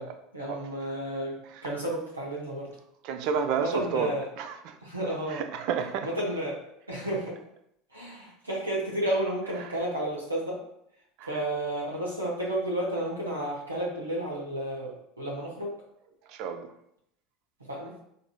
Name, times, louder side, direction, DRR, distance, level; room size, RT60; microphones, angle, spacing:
voice 1, 0.3-1.4 1.6-2.7 3.6-4.3 4.8-5.4 6.0-6.6 6.9-7.4 7.9-10.6 11.3-15.8 17.7-17.9, right 1 dB, 90° right, -4 dB, 0.7 m, -32 dB
voice 2, 3.0-4.8 5.3-6.1 9.5-9.7 11.2-11.4 16.3-16.7, right 6 dB, 55° right, 8 dB, 0.4 m, -31 dB
4.7 x 2.5 x 2.3 m, 0.76 s
figure-of-eight pair, 75°, 0 cm